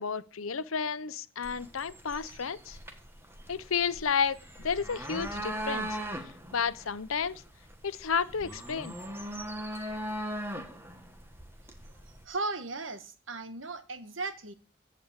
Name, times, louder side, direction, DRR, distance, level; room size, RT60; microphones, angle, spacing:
voice 1, 0.0-2.8 3.5-6.0 6.5-7.4 7.8-9.0, left 6 dB, 85° left, 0.8 m, -31 dB
sound 1, 1.4-12.2, right 1 dB, 10° right, 1.5 m, -39 dB
voice 2, 12.2-14.5, right 3 dB, 70° right, 1.3 m, -36 dB
14.5 x 5.2 x 8.8 m
head